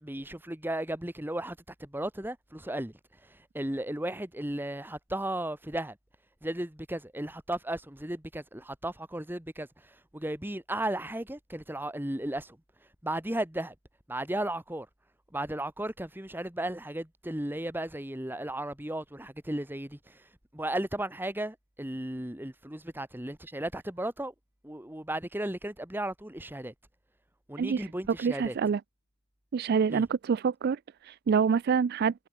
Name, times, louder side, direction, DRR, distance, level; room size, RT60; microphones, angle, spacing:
voice 1, 0.0-2.9 3.2-6.0 6.4-12.6 13.0-13.7 14.1-14.9 15.3-24.3 24.6-26.7 27.5-28.6 29.9-30.0, right 1 dB, 10° right, 1.3 m, -35 dB
voice 2, 28.2-28.8 29.5-32.1, right 6 dB, 45° right, 0.3 m, -26 dB
head